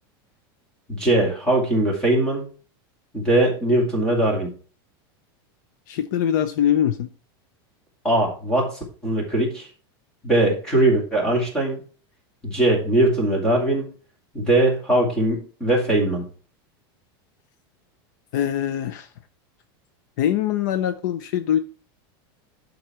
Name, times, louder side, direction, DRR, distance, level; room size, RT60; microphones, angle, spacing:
voice 1, 0.9-2.4 3.1-4.5 8.0-9.7 10.2-11.8 12.4-13.9 14.3-16.2, right 1 dB, 5° left, -2 dB, 2.4 m, -21 dB
voice 2, 5.9-7.1 18.3-19.1 20.2-21.6, left 10 dB, 50° left, 10 dB, 0.6 m, -23 dB
11.5 x 4.0 x 4.3 m, 0.38 s
supercardioid pair, 180°, 13 cm